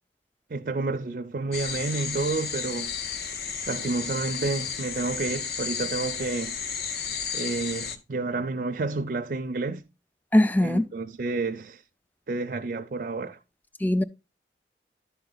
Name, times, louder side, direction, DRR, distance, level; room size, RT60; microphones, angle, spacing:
voice 1, 0.5-2.9 3.7-6.5 7.3-9.8 10.6-11.8 12.3-13.4, right 3 dB, 50° right, 0.4 m, -30 dB
sound 1, 1.5-8.0, left 6 dB, 60° left, 0.7 m, -33 dB
voice 2, 10.3-10.8 13.8-14.0, left 1 dB, 10° left, 0.3 m, -20 dB
11.0 x 3.9 x 3.8 m
head